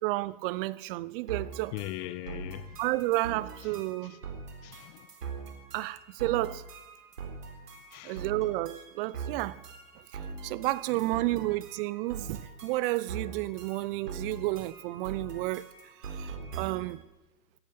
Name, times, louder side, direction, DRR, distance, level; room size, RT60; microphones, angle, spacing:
voice 1, 0.0-1.7 2.8-4.2 5.7-6.6 8.0-9.6 10.1-15.7 16.0-17.0, right 19 dB, 35° right, 0.6 m, -31 dB
sound 1, 1.3-17.0, right 5 dB, 75° right, 4.0 m, -42 dB
voice 2, 1.7-2.8 4.1-4.2 4.6-5.1 5.4-5.5 7.9-8.2, left 16 dB, 30° left, 0.5 m, -40 dB
17.0 x 11.5 x 6.9 m
hypercardioid pair, 105°, 47 cm